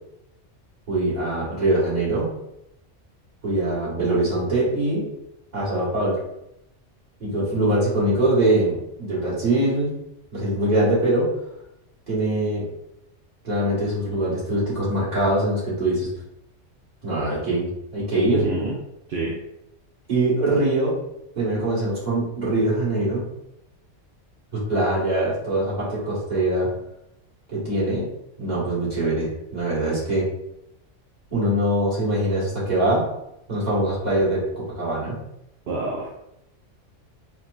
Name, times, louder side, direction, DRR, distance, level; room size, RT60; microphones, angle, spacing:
voice 1, 0.9-2.3 3.4-5.1 5.5-6.2 7.2-9.9 10.3-11.3 12.1-12.7 13.4-16.1 17.0-18.4 20.1-21.0 21.3-23.2 24.5-26.7 27.5-28.0 28.4-30.3 31.3-33.0 33.5-35.1, right 1 dB, 35° right, -9 dB, 1.7 m, -23 dB
voice 2, 18.3-18.8 19.1-19.4 35.7-36.3, right 3 dB, 60° right, -4 dB, 0.7 m, -27 dB
4.2 x 2.1 x 2.5 m, 0.83 s
omnidirectional pair, 1.3 m